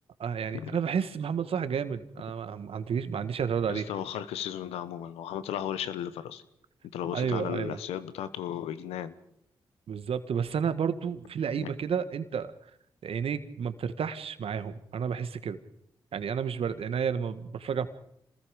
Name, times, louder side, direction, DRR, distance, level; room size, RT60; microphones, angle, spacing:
voice 1, 0.2-3.9 7.1-7.8 9.9-12.5 13.0-15.6 16.1-17.9, right 7 dB, 70° right, 11 dB, 1.6 m, -31 dB
voice 2, 3.7-6.4 6.9-9.2 11.6-11.7, left 10 dB, 90° left, 14 dB, 1.1 m, -35 dB
27.0 x 20.5 x 5.2 m, 0.74 s
supercardioid pair, 40°, 10 cm